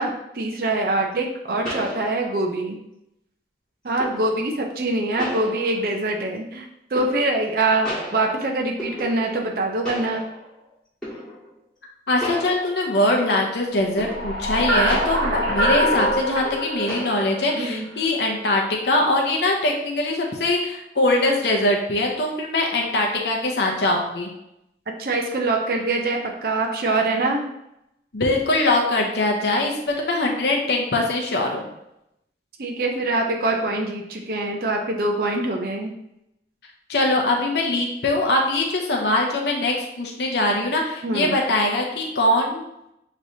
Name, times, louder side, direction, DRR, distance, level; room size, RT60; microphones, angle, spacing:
voice 1, 0.0-2.8 3.8-6.7 6.9-10.3 17.5-17.9 25.0-27.5 32.6-35.9 41.0-41.4, right 2 dB, 55° right, 1 dB, 0.6 m, -24 dB
sound 1, 1.1-1.2 1.6-2.5 4.0-4.4 5.2-6.1 6.9-7.5 7.8-9.5 9.8-10.6 11.0-11.5 12.2-13.1 14.0-14.6 14.9-16.5 16.9-17.5, left 1 dB, 5° left, 1.7 m, -34 dB
voice 2, 12.1-24.3 28.1-31.6 36.9-42.6, left 2 dB, 75° left, 0 dB, 0.7 m, -22 dB
sound 2, 13.9-18.2, equal, 90° right, 1.3 m, -24 dB
6.3 x 3.1 x 2.7 m, 0.82 s
head